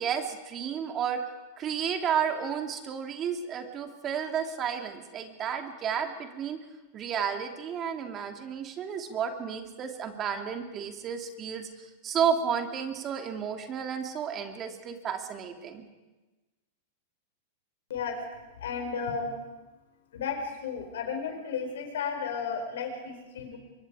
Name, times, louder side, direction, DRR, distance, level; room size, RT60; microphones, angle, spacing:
voice 1, 0.0-6.6 6.9-15.8, right 7 dB, 35° right, 5 dB, 2.6 m, -32 dB
voice 2, 17.9-19.3 20.1-23.6, left 5 dB, 75° left, 4 dB, 4.6 m, -34 dB
24.0 x 23.0 x 4.9 m, 1.2 s
hypercardioid pair, 110°, 0 cm